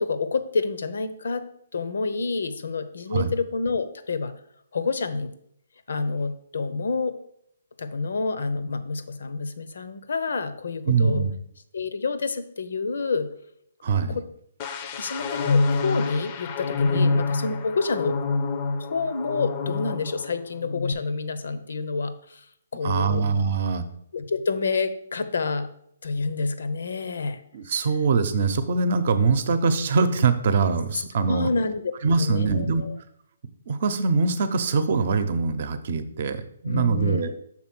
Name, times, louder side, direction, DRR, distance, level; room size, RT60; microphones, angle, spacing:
voice 1, 0.0-1.4 1.7-4.3 4.7-5.3 5.9-7.2 7.8-11.3 11.7-13.3 14.1-14.3 15.0-18.2 18.8-22.5 22.7-23.2 24.1-25.7 26.0-27.4 31.3-31.8 32.2-33.0 36.6-37.4, left 4 dB, 75° left, 11 dB, 0.8 m, -28 dB
voice 2, 10.9-11.3 13.8-14.2 16.9-17.1 22.8-23.8 27.5-31.5 32.0-32.8 33.7-37.3, right 4 dB, 50° right, 11 dB, 0.7 m, -23 dB
sound 1, 14.6-20.3 20.6-20.9, left 4 dB, 30° left, 0.5 m, -26 dB
6.1 x 3.7 x 6.1 m, 0.70 s
hypercardioid pair, 155°, 0 cm